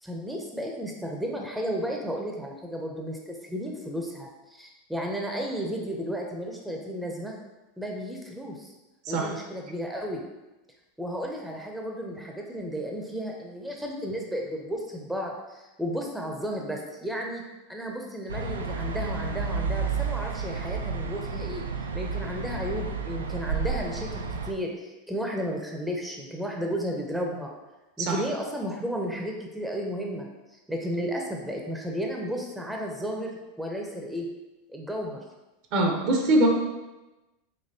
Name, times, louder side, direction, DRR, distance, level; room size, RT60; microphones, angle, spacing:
voice 1, 0.0-7.3 7.8-8.7 9.1-10.2 11.0-17.4 17.7-21.6 21.9-27.5 28.0-30.3 30.7-34.3 34.7-35.2, equal, 5° right, 0 dB, 0.6 m, -33 dB
sound 1, 18.3-24.5, right 5 dB, 85° right, 0.3 m, -31 dB
voice 2, 35.7-36.5, right 1 dB, 55° right, 1 dB, 0.7 m, -22 dB
4.2 x 2.8 x 2.7 m, 1.1 s
hypercardioid pair, 90°, 0 cm